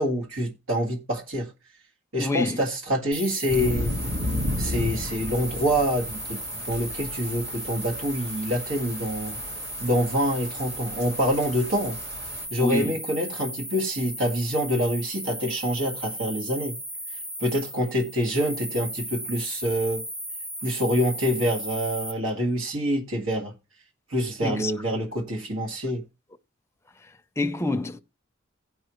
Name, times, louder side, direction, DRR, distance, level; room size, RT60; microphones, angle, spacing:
voice 1, 0.0-1.5 2.1-3.9 4.6-9.4 9.8-12.0 12.5-16.8 17.4-20.0 20.6-23.5 24.1-26.0, equal, 85° right, 1.9 m, -26 dB
voice 2, 2.1-2.6 12.6-13.0 24.4-24.7 27.4-28.0, left 2 dB, 15° left, 0.6 m, -26 dB
sound 1, 3.1-22.1, equal, 10° right, 0.9 m, -36 dB
sound 2, 3.5-12.4, left 1 dB, 60° right, 2.8 m, -34 dB
16.5 x 5.5 x 3.1 m
head